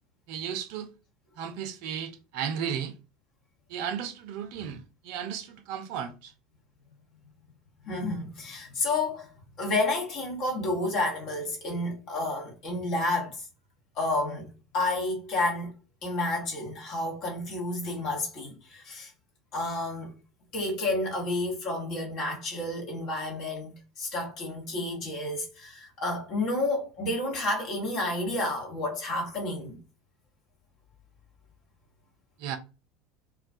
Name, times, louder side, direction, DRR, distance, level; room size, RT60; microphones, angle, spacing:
voice 1, 0.3-0.9 1.4-2.9 3.7-6.3 32.4-32.6, right 8 dB, 60° right, 0.4 m, -34 dB
voice 2, 7.8-13.5 14.0-15.7 16.0-19.1 19.5-20.2 20.5-29.8, left 2 dB, 50° left, 0.9 m, -30 dB
2.2 x 2.2 x 2.5 m
figure-of-eight pair, 70°, 0 cm